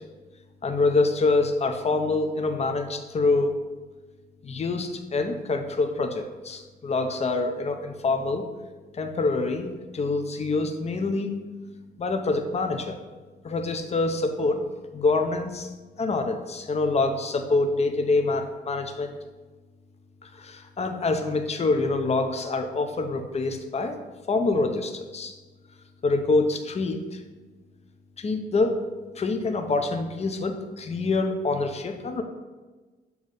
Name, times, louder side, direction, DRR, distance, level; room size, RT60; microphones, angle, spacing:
voice 1, 0.6-3.5 4.4-8.5 8.9-9.7 9.9-11.3 12.0-13.0 13.4-14.6 14.9-15.7 16.0-19.2 20.3-24.0 24.3-25.3 26.0-27.2 28.2-28.8 29.2-32.2, left 3 dB, 30° left, 5 dB, 0.7 m, -26 dB
7.3 x 3.1 x 5.4 m, 1.3 s
cardioid pair, 90°, 20 cm